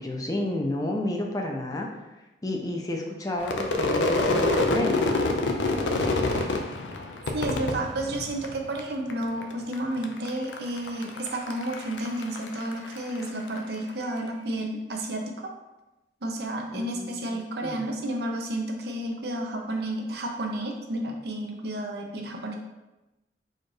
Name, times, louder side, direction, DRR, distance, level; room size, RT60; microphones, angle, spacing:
voice 1, 0.0-2.0 2.4-5.0 16.7-17.8, left 1 dB, 20° left, 1 dB, 0.5 m, -31 dB
Crowd / Fireworks, 3.4-8.8 9.1-9.7 10.0-13.6, left 2 dB, 80° left, 0.5 m, -27 dB
voice 2, 7.3-15.5 16.2-22.5, right 1 dB, 60° right, 2 dB, 0.7 m, -31 dB
4.3 x 2.5 x 4.7 m, 1.0 s
head